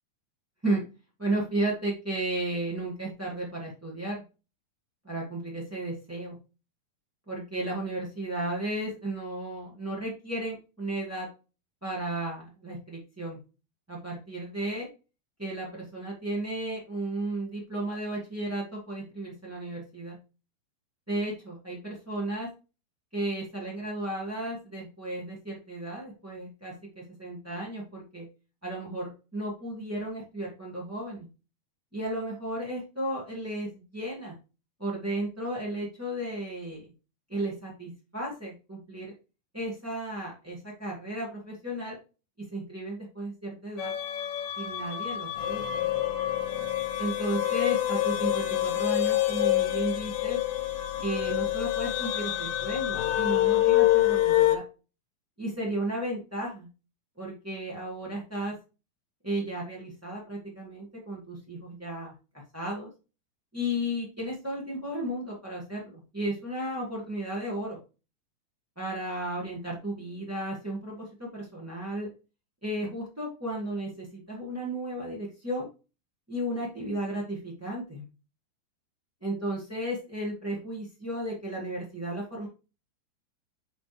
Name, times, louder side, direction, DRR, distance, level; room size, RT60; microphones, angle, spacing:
voice 1, 1.2-4.2 5.0-6.3 7.3-11.3 11.8-13.4 13.9-14.9 15.4-20.2 21.1-22.5 23.1-28.2 28.6-31.3 31.9-34.3 34.8-36.9 37.3-39.1 39.5-42.0 42.4-43.9 44.6-45.9 47.0-50.4 51.0-54.6 55.4-56.7 57.2-58.5 59.2-62.1 62.5-62.9 63.5-67.8 68.7-72.1 72.6-75.7 76.3-78.0 79.2-82.5, right 1 dB, 15° right, -5 dB, 0.5 m, -34 dB
sound 1, 43.8-54.6, left 14 dB, 75° left, 2.4 m, -26 dB
7.9 x 4.5 x 3.2 m, 0.31 s
omnidirectional pair, 4.2 m